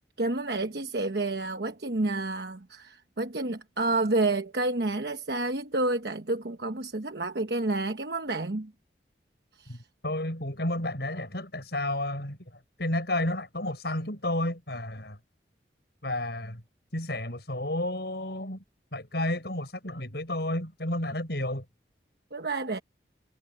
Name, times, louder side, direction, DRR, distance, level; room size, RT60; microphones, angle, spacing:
voice 1, 0.2-8.7 9.6-9.8 22.3-22.8, right 2 dB, 65° right, 1.1 m, -29 dB
voice 2, 10.0-12.4 12.8-15.2 16.0-16.6 16.9-18.6 18.9-21.6, left 1 dB, 70° left, 5.8 m, -31 dB
head